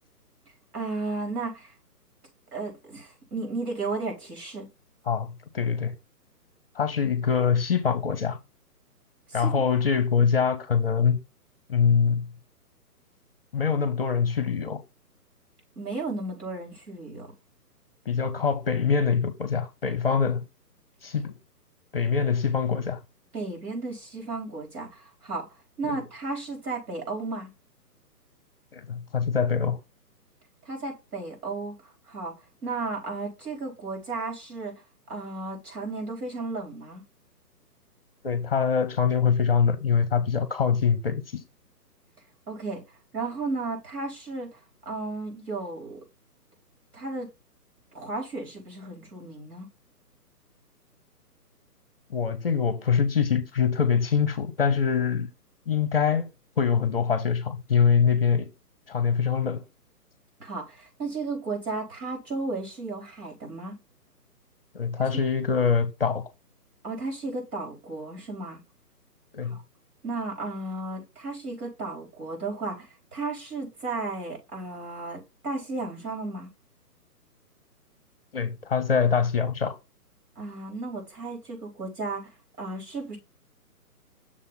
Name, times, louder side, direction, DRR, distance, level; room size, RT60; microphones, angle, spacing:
voice 1, 0.7-1.7 2.5-4.7 9.3-9.5 15.8-17.3 23.3-25.5 25.8-27.5 30.6-31.7 32.1-32.3 32.6-34.7 35.1-37.0 42.5-42.8 43.1-44.6 44.9-46.0 46.9-47.3 47.9-49.7 60.4-63.8 65.0-65.1 66.8-68.6 69.4-69.6 70.0-76.5 80.4-82.3 82.6-83.2, right 3 dB, 70° right, 4.5 m, -34 dB
voice 2, 5.1-5.9 6.8-8.4 9.3-11.2 11.7-12.3 13.5-14.8 18.1-20.4 21.0-21.4 21.9-23.0 25.8-25.9 28.7-29.8 38.2-41.4 52.1-55.3 55.7-56.3 56.6-58.5 58.9-59.6 64.7-66.2 69.3-69.6 78.3-79.8, left 6 dB, 40° left, 0.7 m, -24 dB
6.6 x 3.6 x 5.5 m
hypercardioid pair, 160°, 48 cm